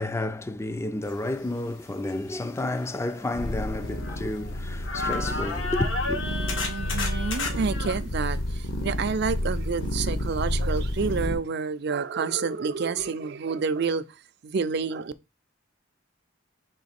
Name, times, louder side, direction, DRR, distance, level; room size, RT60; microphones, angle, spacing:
voice 1, 0.0-6.2, left 2 dB, 15° left, 0.3 m, -31 dB
sound 1, 2.1-2.2 2.8-4.6 4.8-8.0 10.8-10.9 11.2-11.3, left 3 dB, 85° left, 1.2 m, -33 dB
sound 2, 3.3-11.4, left 1 dB, 55° left, 0.8 m, -30 dB
voice 2, 6.2-14.0 14.4-15.1, right 5 dB, 55° right, 0.4 m, -29 dB
4.0 x 3.1 x 4.2 m
head